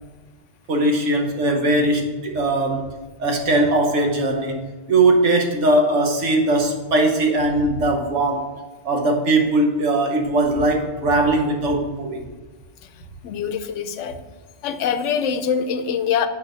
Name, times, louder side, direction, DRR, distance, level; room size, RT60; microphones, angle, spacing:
voice 1, 0.7-2.9 3.2-8.5 8.8-12.3, right 2 dB, 80° right, 3 dB, 1.4 m, -20 dB
voice 2, 13.2-14.2 14.6-16.3, left 7 dB, 85° left, 11 dB, 0.9 m, -24 dB
6.6 x 4.5 x 6.2 m, 1.2 s
omnidirectional pair, 1.2 m